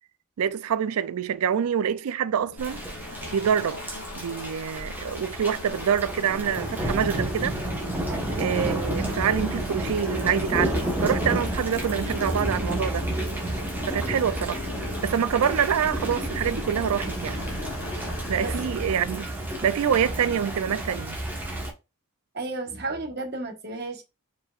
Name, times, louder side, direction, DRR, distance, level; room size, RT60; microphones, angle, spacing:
voice 1, 0.4-2.8 3.3-3.8 4.2-7.6 8.4-13.1 13.9-14.6 15.0-17.4 18.3-19.3 19.6-21.2, right 8 dB, 85° right, 0.4 m, -26 dB
sound 1, 2.3-19.3, left 2 dB, 75° left, 0.9 m, -41 dB
Thunder / Rain, 2.6-21.7, right 1 dB, 10° right, 1.1 m, -31 dB
voice 2, 8.1-8.4 18.4-18.5 22.3-24.0, right 2 dB, 45° right, 1.2 m, -33 dB
4.7 x 4.5 x 2.4 m
head